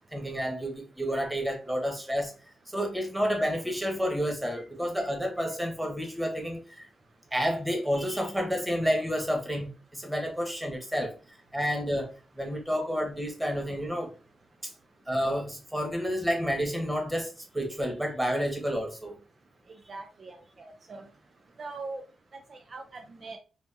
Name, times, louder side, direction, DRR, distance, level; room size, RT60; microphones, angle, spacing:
voice 1, 0.1-2.3 2.7-6.9 7.3-11.1 11.5-12.1 12.4-14.1 14.6-14.7 15.1-19.1, equal, 10° right, 1.3 m, -30 dB
voice 2, 19.7-21.1 21.6-22.0 22.3-23.4, right 3 dB, 55° right, 0.5 m, -42 dB
4.2 x 2.6 x 2.5 m
cardioid pair, 55°, 0 cm